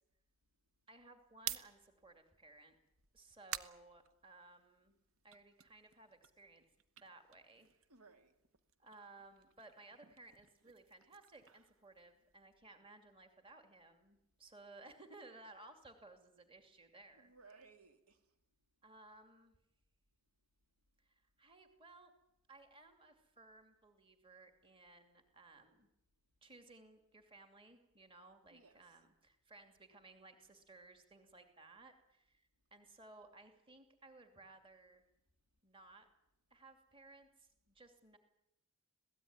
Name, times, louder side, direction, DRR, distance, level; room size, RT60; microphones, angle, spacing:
voice 1, 0.9-2.8 3.1-5.0 5.2-6.6 7.0-7.7 8.8-17.3 18.8-19.6 21.0-22.1 22.5-25.9 26.4-35.0 35.6-36.1 36.5-38.2, right 2 dB, 25° right, 2.7 m, -60 dB
sound 1, 1.3-4.8 5.2-8.1 8.4-12.5, right 9 dB, 65° right, 1.1 m, -51 dB
voice 2, 7.9-8.3 17.1-18.2 28.5-29.0, right 4 dB, 90° right, 2.7 m, -62 dB
26.5 x 17.5 x 9.6 m
head